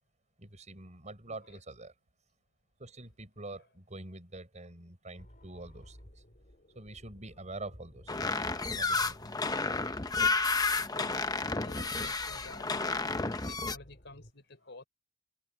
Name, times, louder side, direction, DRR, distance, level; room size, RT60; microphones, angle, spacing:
voice 1, 0.4-1.9 2.8-6.0 6.7-8.5 8.7-9.3, right 2 dB, 40° right, 6.2 m, -45 dB
voice 2, 1.3-1.6 10.6-11.2 11.6-14.8, left 2 dB, 65° left, 4.4 m, -52 dB
sound 1, 5.2-14.3, equal, 45° left, 6.4 m, -56 dB
sound 2, 8.1-13.8, left 3 dB, 20° left, 0.9 m, -31 dB
head